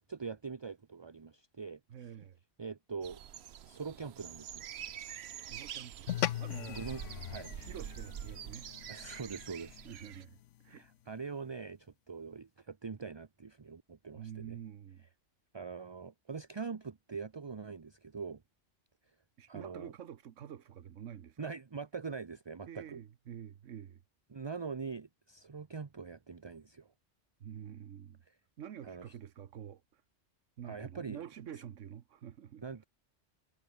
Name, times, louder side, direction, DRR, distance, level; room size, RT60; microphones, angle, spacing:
voice 1, 0.1-2.1 2.6-3.2 3.7-4.7 6.7-7.5 8.9-9.8 10.7-14.6 15.5-18.4 19.5-19.9 21.4-23.0 24.3-26.9 28.3-28.4 28.8-29.1 30.6-31.2 32.6-32.9, right 5 dB, 30° right, 0.6 m, -43 dB
voice 2, 1.9-2.4 5.4-6.1 6.4-6.8 7.5-8.8 9.8-10.8 14.1-15.1 19.4-21.5 22.7-24.0 27.4-28.2 28.6-30.0 30.6-32.9, right 9 dB, 90° right, 1.3 m, -48 dB
sound 1, 3.0-10.2, right 10 dB, 65° right, 1.0 m, -46 dB
sound 2, 6.1-10.7, left 13 dB, 80° left, 1.0 m, -40 dB
omnidirectional pair, 1.2 m